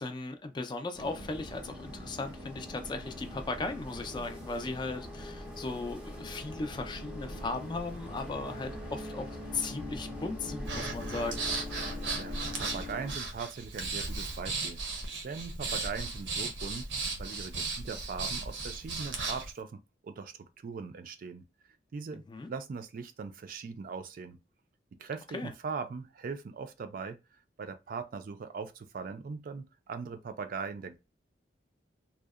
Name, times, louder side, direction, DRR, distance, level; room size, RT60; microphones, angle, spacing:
voice 1, 0.0-11.5 22.3-22.5 25.3-25.5, left 3 dB, 25° left, 0.3 m, -37 dB
sound 1, 0.9-13.2, left 1 dB, 5° right, 0.7 m, -42 dB
Breathing, 10.6-19.5, right 3 dB, 90° right, 0.7 m, -36 dB
voice 2, 12.2-14.8 15.2-16.9 17.2-21.4 21.9-22.2 22.5-24.4 25.0-27.2 27.6-31.0, right 5 dB, 50° right, 0.3 m, -40 dB
2.7 x 2.0 x 2.3 m
head